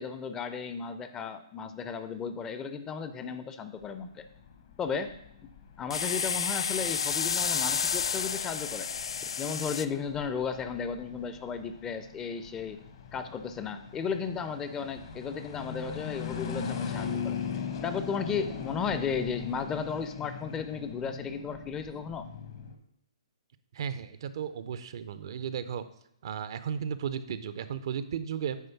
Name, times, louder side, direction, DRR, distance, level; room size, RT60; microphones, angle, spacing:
voice 1, 0.0-4.3 4.8-5.1 5.8-8.9 9.4-12.8 13.1-17.4 17.8-22.3, left 6 dB, 15° left, 10 dB, 0.5 m, -34 dB
sound 1, 3.8-22.8, left 6 dB, 50° left, 1.1 m, -40 dB
sound 2, 5.9-9.9, left 6 dB, 65° left, 0.3 m, -30 dB
voice 2, 23.7-25.8 26.2-28.6, right 8 dB, 55° right, 13 dB, 0.5 m, -34 dB
9.3 x 3.2 x 5.8 m, 0.74 s
figure-of-eight pair, 130°, 3 cm